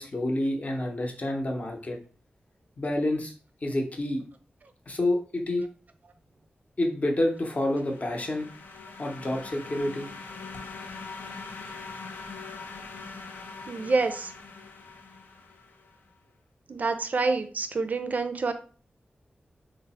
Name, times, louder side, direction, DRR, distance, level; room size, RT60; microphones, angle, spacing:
voice 1, 0.0-2.0 2.8-3.3 3.6-4.2 4.9-5.6 6.8-8.5 9.0-10.1, left 1 dB, 40° left, 1 dB, 0.7 m, -28 dB
sound 1, 7.3-16.0, left 4 dB, 75° left, 0.4 m, -43 dB
voice 2, 13.7-14.3 16.7-18.5, right 3 dB, 50° right, 8 dB, 0.4 m, -27 dB
3.2 x 2.0 x 4.0 m, 0.41 s
wide cardioid pair, 95°, 4 cm